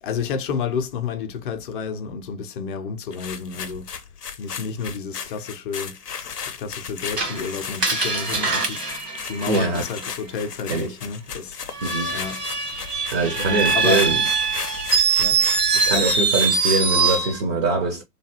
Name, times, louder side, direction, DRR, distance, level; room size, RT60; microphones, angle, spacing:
voice 1, 0.0-3.9 4.4-6.0 6.5-8.9 9.3-11.6 12.1-12.4 13.4-14.1 15.2-15.4, left 6 dB, 35° left, 0.5 m, -30 dB
sound 1, 3.1-17.3, left 7 dB, 80° left, 0.7 m, -35 dB
Screech, 7.2-10.0 11.7-17.4, right 5 dB, 90° right, 1.1 m, -23 dB
voice 2, 9.5-9.9 10.7-10.9 11.8-12.2 13.1-14.2 15.7-18.0, right 3 dB, 20° right, 0.4 m, -23 dB
3.4 x 2.3 x 2.7 m
figure-of-eight pair, 110°, 46 cm